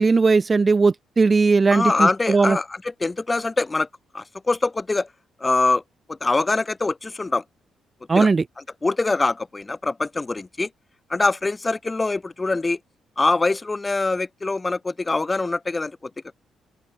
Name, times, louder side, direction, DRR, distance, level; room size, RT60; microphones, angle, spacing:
voice 1, 0.0-2.6 8.1-8.4, right 4 dB, 25° right, 0.9 m, -18 dB
voice 2, 1.7-3.9 4.1-5.1 5.4-5.8 6.1-7.4 8.1-8.3 8.8-10.7 11.1-12.8 13.2-16.1, left 3 dB, 20° left, 2.8 m, -23 dB
open air
cardioid pair, 115°, 0 cm